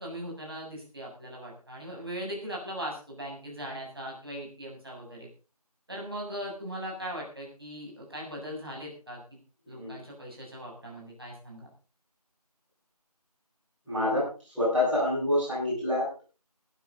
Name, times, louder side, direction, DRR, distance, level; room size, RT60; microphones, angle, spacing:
voice 1, 0.0-5.3 5.9-9.4 9.7-11.7, equal, 35° right, -2 dB, 7.5 m, -39 dB
voice 2, 13.8-14.2 14.5-16.2, left 1 dB, ahead, -29 dB, 4.6 m, -27 dB
15.0 x 15.0 x 4.0 m, 0.35 s
figure-of-eight pair, 180°, 20 cm